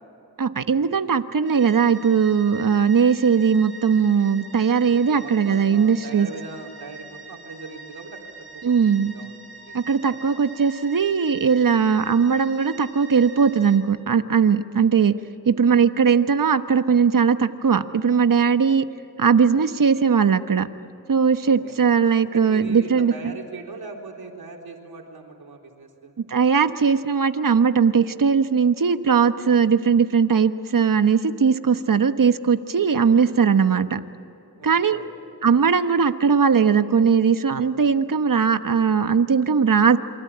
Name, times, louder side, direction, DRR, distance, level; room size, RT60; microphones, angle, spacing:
voice 1, 0.4-6.3 8.6-9.1 9.7-15.1 15.5-18.8 19.2-20.7 21.1-23.3 26.3-34.0 34.6-35.0 35.4-40.0, right 6 dB, 65° right, 10 dB, 1.2 m, -19 dB
sound 1, 1.4-13.8, right 4 dB, 35° right, 5.1 m, -43 dB
voice 2, 4.9-8.2 8.5-9.3 9.6-10.2 21.4-21.7 22.2-26.1 34.6-35.3, right 4 dB, 85° right, 1 dB, 4.1 m, -39 dB
28.0 x 24.5 x 8.7 m, 2.9 s
cardioid pair, 55°, 36 cm